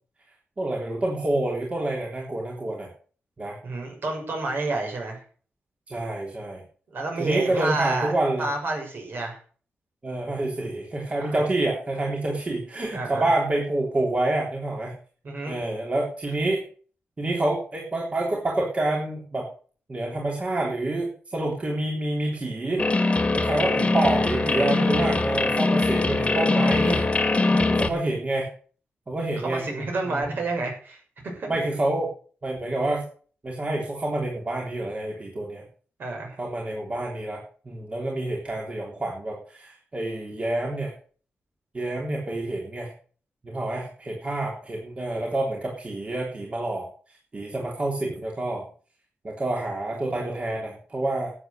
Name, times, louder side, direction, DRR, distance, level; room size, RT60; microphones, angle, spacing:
voice 1, 0.6-2.9 3.4-3.6 5.9-6.6 7.2-8.5 10.0-14.9 15.5-16.6 17.2-19.5 19.9-22.8 23.3-27.0 27.7-28.5 29.1-29.6 30.1-30.2 31.5-32.1 32.4-33.0 33.4-35.6 36.4-40.9 41.7-42.9 43.4-46.9 47.3-48.6 49.2-51.3, right 2 dB, 30° right, -2 dB, 3.4 m, -27 dB
voice 2, 3.6-5.2 6.9-9.4 11.1-11.4 12.9-13.3 15.2-15.5 27.5-27.7 29.4-31.0 31.3-31.6 36.0-36.4, right 2 dB, 55° right, 2 dB, 6.3 m, -30 dB
sound 1, 22.8-27.9, left 3 dB, 30° left, 1.8 m, -22 dB
12.5 x 8.5 x 6.7 m, 0.43 s
wide cardioid pair, 115°, 4 cm